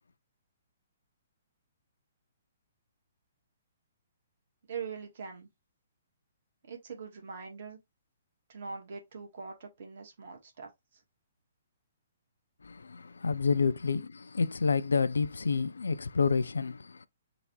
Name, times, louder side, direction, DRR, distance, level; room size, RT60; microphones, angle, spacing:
voice 1, 4.7-5.5 6.6-7.8 8.5-11.0, right 5 dB, 55° right, 1.5 m, -42 dB
voice 2, 12.6-17.1, left 5 dB, 70° left, 0.3 m, -29 dB
3.9 x 2.6 x 3.1 m
figure-of-eight pair, 125°, 0 cm